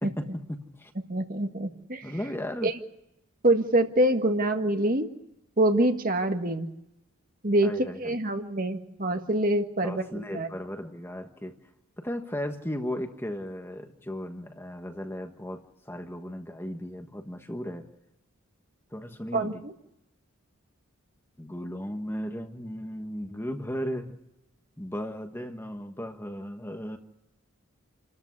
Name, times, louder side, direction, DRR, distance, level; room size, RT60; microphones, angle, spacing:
voice 1, 0.0-0.9 2.0-2.7 7.6-8.2 9.8-11.6 12.0-17.9 18.9-19.6 21.4-24.2 24.8-27.0, equal, 10° left, 5 dB, 1.4 m, -36 dB
voice 2, 1.1-2.1 2.6-2.7 3.4-5.1 5.6-6.7 7.4-7.7 8.0-10.5 19.3-19.7, right 1 dB, 40° right, 6 dB, 1.7 m, -25 dB
29.0 x 13.5 x 9.6 m, 0.88 s
head